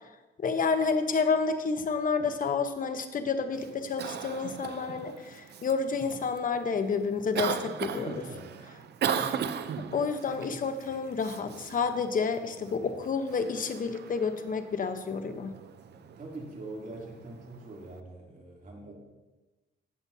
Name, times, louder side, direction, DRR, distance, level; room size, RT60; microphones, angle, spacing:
voice 1, 0.4-8.3 9.2-9.4 9.7-15.5, left 5 dB, 45° left, 8 dB, 0.9 m, -30 dB
Cough, 3.5-18.0, right 8 dB, 55° right, 0.6 m, -38 dB
voice 2, 8.1-8.6 8.9-9.0 15.9-18.9, right 2 dB, 40° right, -2 dB, 2.9 m, -44 dB
16.0 x 6.9 x 2.8 m, 1.1 s
cardioid pair, 90°, 20 cm